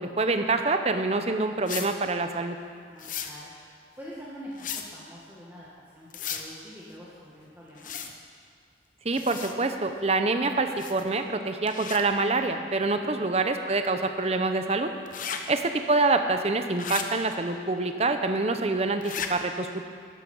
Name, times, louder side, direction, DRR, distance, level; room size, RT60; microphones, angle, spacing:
voice 1, 0.0-2.6 9.0-14.9 15.5-19.9, right 3 dB, 35° right, 7 dB, 0.8 m, -26 dB
sound 1, 1.7-1.9 3.0-3.3 4.6-4.9 6.1-6.5 7.8-8.1 9.1-9.5 10.8-11.1 11.7-12.0 15.1-15.4 16.8-17.0 19.0-19.3, left 8 dB, 45° left, 0.9 m, -34 dB
voice 2, 2.9-3.5 4.0-5.7 5.9-7.9 15.3-15.5, equal, 10° right, -8 dB, 1.8 m, -45 dB
13.0 x 12.0 x 5.5 m, 2.1 s
head